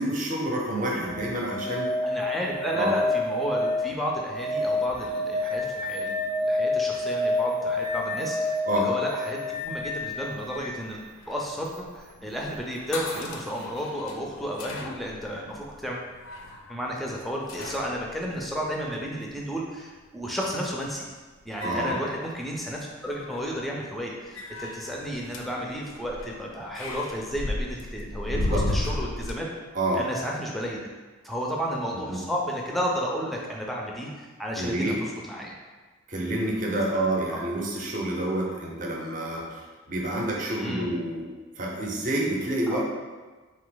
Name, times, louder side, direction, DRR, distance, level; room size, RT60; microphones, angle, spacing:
voice 1, 0.0-1.9 2.7-2.9 8.7-8.9 21.6-22.0 28.3-28.6 29.7-30.0 32.1-32.2 34.6-35.0 36.1-41.3 41.6-42.8, right 1 dB, 40° right, -2 dB, 0.7 m, -28 dB
sound 1, 1.0-10.8 13.1-13.2, left 2 dB, 90° right, 0.6 m, -28 dB
voice 2, 2.0-11.0 11.3-16.1 16.7-21.1 21.4-29.5 29.9-30.9 31.2-35.5 37.3-37.4 40.6-40.9 42.7-42.8, equal, ahead, -2 dB, 0.4 m, -32 dB
sound 2, 9.6-19.3 20.7-21.0 21.4-22.7 23.0-23.6 24.3-29.3, left 2 dB, 75° left, 0.5 m, -36 dB
4.0 x 2.8 x 3.8 m, 1.3 s
head